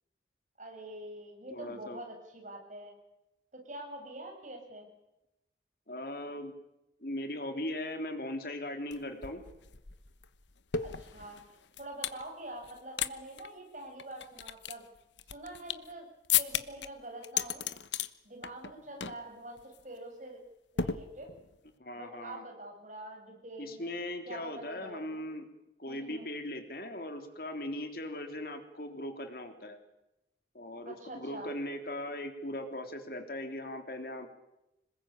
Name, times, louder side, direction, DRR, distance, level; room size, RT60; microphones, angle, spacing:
voice 1, 0.6-2.9 3.5-4.9 10.8-11.4 11.8-14.8 15.3-16.1 16.4-17.7 18.2-19.6 19.8-20.4 20.7-21.3 22.0-24.0 24.3-25.2 25.9-26.3 30.9-31.5, right 1 dB, 45° right, 2 dB, 7.2 m, -45 dB
voice 2, 1.5-2.0 5.9-6.5 7.0-9.4 21.8-22.4 23.6-25.5 25.8-29.8 30.5-34.3, left 1 dB, 55° left, 6 dB, 3.4 m, -39 dB
sound 1, 8.9-9.0 9.2-12.2 12.6-13.1 13.4-13.5 14.0-15.9 16.3-16.9 17.2-18.1 18.4-18.7 19.0-19.3 19.6-19.8 20.8-21.5, left 9 dB, 85° left, 1.1 m, -34 dB
26.5 x 21.0 x 8.9 m, 0.91 s
head